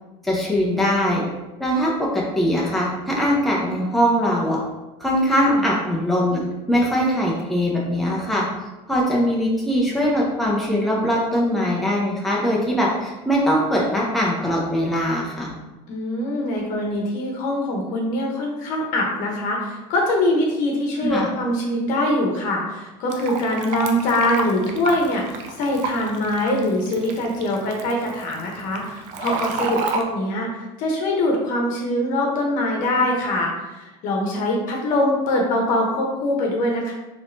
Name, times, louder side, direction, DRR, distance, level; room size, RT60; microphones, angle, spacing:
voice 1, 0.2-1.2 1.6-4.6 5.0-6.4 6.7-8.5 8.9-15.5 21.0-21.3, equal, ahead, -4 dB, 0.8 m, -21 dB
voice 2, 15.9-36.9, left 1 dB, 60° left, 0 dB, 1.0 m, -23 dB
Fill (with liquid), 23.1-30.0, right 4 dB, 60° right, 0.5 m, -31 dB
4.0 x 3.1 x 2.7 m, 1.1 s
supercardioid pair, 120°, 15 cm